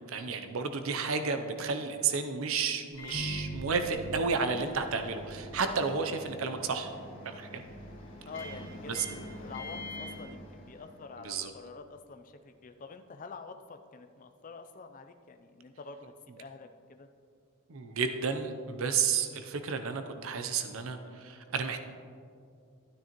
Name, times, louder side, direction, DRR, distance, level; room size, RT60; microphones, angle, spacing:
voice 1, 0.1-6.9 7.2-7.6 8.9-9.0 11.2-11.5 17.7-21.8, right 5 dB, 65° right, 7 dB, 0.6 m, -32 dB
Microwave oven, 2.9-11.1, equal, 55° left, 1.8 m, -43 dB
voice 2, 8.3-17.1, left 4 dB, 35° left, 7 dB, 0.4 m, -47 dB
12.5 x 9.8 x 3.0 m, 2.4 s
head